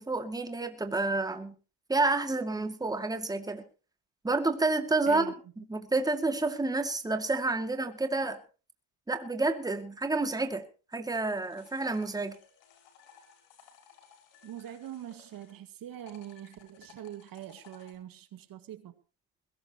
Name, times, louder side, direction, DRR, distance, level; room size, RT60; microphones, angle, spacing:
voice 1, 0.0-1.6 1.9-3.7 4.2-8.4 9.1-10.7 10.9-12.4, right 3 dB, 10° right, 6 dB, 2.3 m, -29 dB
sound 1, 11.0-15.6 15.9-18.0, left 7 dB, 75° left, 5.9 m, -58 dB
voice 2, 14.4-18.9, right 11 dB, 50° right, 10 dB, 2.0 m, -43 dB
21.0 x 17.5 x 3.0 m, 0.36 s
cardioid pair, 125°, 44 cm